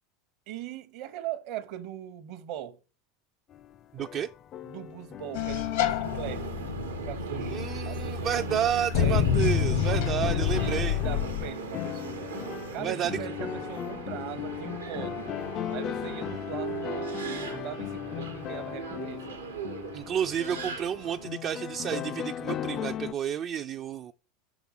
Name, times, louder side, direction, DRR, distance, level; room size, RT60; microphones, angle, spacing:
voice 1, 0.5-2.8 4.6-6.6 7.0-7.6 7.9-9.5 9.9-12.3 12.7-15.4 15.7-19.4, right 11 dB, 60° right, 0.8 m, -40 dB
sound 1, 3.5-8.1 8.6-8.7 9.5-23.1, left 10 dB, 40° left, 0.3 m, -38 dB
voice 2, 3.9-4.3 7.5-11.0 12.8-13.3 19.9-24.1, right 9 dB, 40° right, 0.3 m, -31 dB
sound 2, 5.3-11.5, left 8 dB, 70° left, 0.9 m, -28 dB
Subway metro underground, 6.0-21.3, right 5 dB, 90° right, 0.9 m, -39 dB
6.0 x 3.4 x 5.5 m
hypercardioid pair, 90°, 0 cm